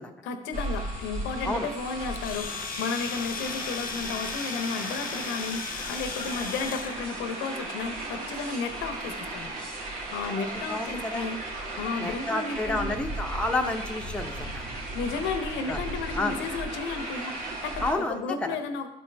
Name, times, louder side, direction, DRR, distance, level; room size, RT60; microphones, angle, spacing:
voice 1, 0.2-9.5 10.1-11.4 11.7-13.0 14.9-18.9, left 5 dB, 85° left, 8 dB, 0.8 m, -33 dB
sound 1, 0.5-17.9, right 1 dB, 50° right, 2.3 m, -36 dB
Domestic sounds home sounds, 2.2-7.0, left 8 dB, 50° left, 0.5 m, -37 dB
voice 2, 10.7-11.2 12.0-14.7 15.7-15.8 16.2-16.4 17.8-18.5, left 2 dB, 5° left, 2 dB, 0.8 m, -30 dB
11.5 x 4.3 x 3.3 m, 0.89 s
supercardioid pair, 75°, 19 cm